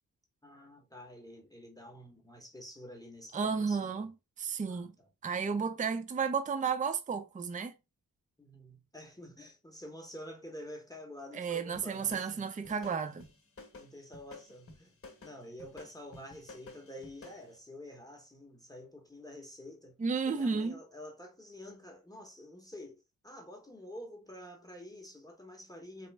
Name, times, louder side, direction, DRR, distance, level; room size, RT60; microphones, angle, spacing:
voice 1, 0.4-4.1 4.7-5.1 8.4-12.8 13.7-14.9 15.2-20.0 20.3-26.1, left 1 dB, 10° left, 0.9 m, -49 dB
voice 2, 3.3-4.1 4.4-4.9 5.2-7.7 11.3-13.3 20.0-20.8, right 5 dB, 20° right, 0.4 m, -32 dB
sound 1, 11.7-17.5, left 3 dB, 40° left, 1.1 m, -53 dB
4.0 x 2.0 x 3.3 m
wide cardioid pair, 95°, 36 cm